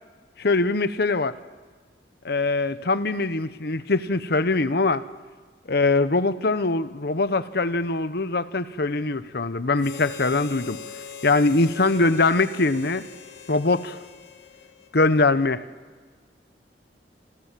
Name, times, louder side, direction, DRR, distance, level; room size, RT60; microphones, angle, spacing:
voice 1, 0.4-1.3 2.2-5.0 5.7-10.8 11.2-13.0 13.5-14.0 14.9-15.6, left 3 dB, 60° left, 1.0 m, -22 dB
Harmonica, 9.8-15.3, left 6 dB, 85° left, 2.3 m, -42 dB
28.0 x 27.0 x 7.5 m
head